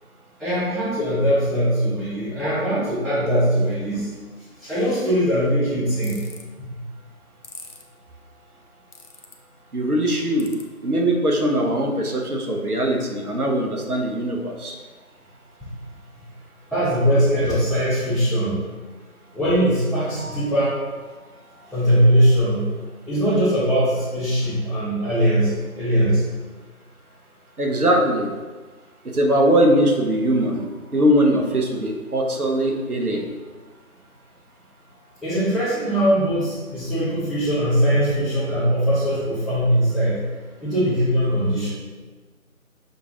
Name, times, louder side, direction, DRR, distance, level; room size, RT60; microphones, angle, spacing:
voice 1, 0.4-4.1 4.6-6.3 6.7-6.8 15.6-15.7 16.7-18.7 19.3-20.7 21.7-22.7 23.1-26.2 35.2-40.2 40.6-41.7, equal, ahead, -15 dB, 0.6 m, -21 dB
sound 1, 6.0-6.4 7.4-7.8 8.9-9.3 10.4-10.6, left 4 dB, 80° left, 0.8 m, -40 dB
voice 2, 9.7-10.5 10.8-14.7 27.6-28.3 29.1-30.7 30.9-33.2, right 1 dB, 90° right, 1 dB, 1.0 m, -21 dB
Mallet percussion, 20.2-22.0, equal, 55° right, 0.8 m, -45 dB
6.6 x 2.5 x 2.8 m, 1.3 s
figure-of-eight pair, 175°, 44 cm